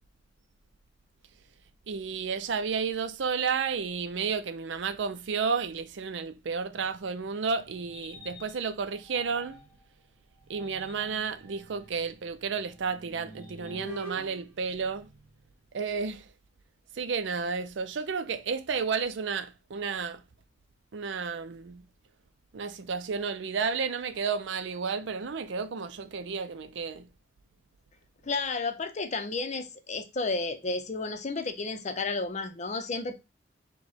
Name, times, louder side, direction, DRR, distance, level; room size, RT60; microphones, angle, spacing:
voice 1, 1.9-9.6 10.5-15.1 15.7-16.3 17.0-20.2 20.9-21.8 22.5-27.1, right 5 dB, 75° right, 0.5 m, -32 dB
sound 1, 6.7-9.8 10.4-15.5, right 1 dB, 10° right, 1.7 m, -48 dB
voice 2, 28.2-33.1, left 3 dB, 40° left, 0.6 m, -32 dB
4.8 x 2.2 x 4.1 m
head